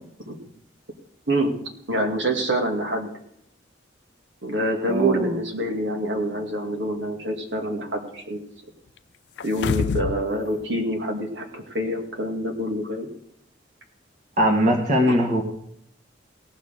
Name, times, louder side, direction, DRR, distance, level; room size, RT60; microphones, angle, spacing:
voice 1, 1.9-3.1 4.4-8.4 9.4-13.1 15.1-15.2, right 1 dB, 75° right, 2 dB, 2.3 m, -26 dB
voice 2, 4.9-5.4 14.4-15.4, equal, 45° right, 1 dB, 1.7 m, -20 dB
sound 1, 9.4-10.3 10.6-10.7, left 5 dB, 65° left, 0.4 m, -26 dB
17.5 x 6.6 x 6.6 m, 0.72 s
head